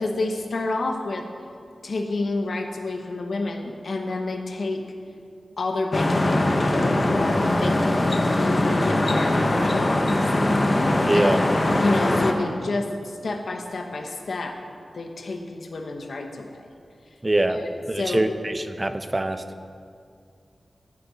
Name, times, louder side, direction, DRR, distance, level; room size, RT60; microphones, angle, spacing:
voice 1, 0.0-1.3 1.8-4.8 5.6-10.3 11.1-11.4 11.7-14.6 14.9-16.7 17.5-17.7 18.0-18.4, left 2 dB, 70° left, 4 dB, 1.0 m, -30 dB
sound 1, 5.9-12.3, left 1 dB, 30° left, 0.9 m, -21 dB
voice 2, 11.0-11.4 17.2-17.6 17.9-19.4, right 1 dB, 20° right, 9 dB, 0.6 m, -23 dB
14.5 x 8.6 x 4.1 m, 2.3 s
wide cardioid pair, 115°, 0 cm